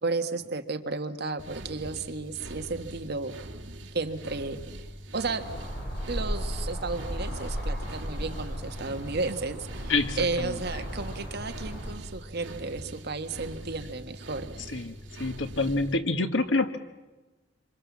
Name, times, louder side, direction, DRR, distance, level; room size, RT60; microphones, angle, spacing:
voice 1, 0.0-3.3 3.9-4.9 5.1-5.5 6.1-14.6, right 3 dB, 60° right, 7 dB, 1.6 m, -33 dB
sound 1, 1.4-15.9, right 1 dB, 75° right, 2.5 m, -43 dB
sound 2, 5.4-11.9, equal, 60° left, 7.8 m, -35 dB
voice 2, 9.9-10.5 14.7-16.8, left 3 dB, 75° left, 8 dB, 1.7 m, -27 dB
26.5 x 26.0 x 7.4 m, 1.2 s
head